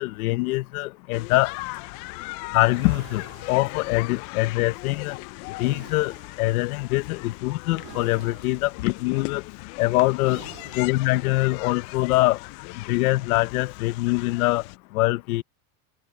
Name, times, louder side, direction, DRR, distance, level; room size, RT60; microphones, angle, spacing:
voice 1, 0.0-1.5 2.5-5.2 5.6-9.4 9.8-10.4 10.8-12.4 12.9-14.6 14.9-15.4, left 19 dB, 90° left, 1.0 m, -23 dB
sound 1, 1.1-14.8, left 24 dB, 55° left, 0.7 m, -39 dB
sound 2, 2.6-4.3 5.6-6.5 7.7-8.8 10.2-11.2, right 22 dB, 55° right, 2.0 m, -48 dB
supercardioid pair, 155°, 42 cm